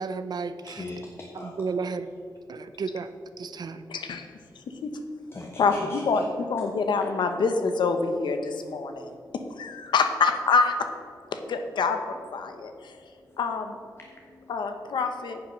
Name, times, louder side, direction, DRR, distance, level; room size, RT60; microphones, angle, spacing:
voice 1, 0.0-0.8 1.4-2.1 2.5-3.1 3.4-3.8, right 4 dB, 65° right, 11 dB, 0.6 m, -32 dB
voice 2, 0.7-1.6 5.3-6.0 14.0-14.4, left 2 dB, 30° left, 0 dB, 1.3 m, -41 dB
voice 3, 3.9-4.3 4.8-4.9 5.6-9.1 9.6-10.9 11.3-13.0 13.4-13.8 14.5-15.4, left 4 dB, 90° left, 6 dB, 1.0 m, -26 dB
9.7 x 6.9 x 6.5 m, 2.2 s
wide cardioid pair, 90°, 8 cm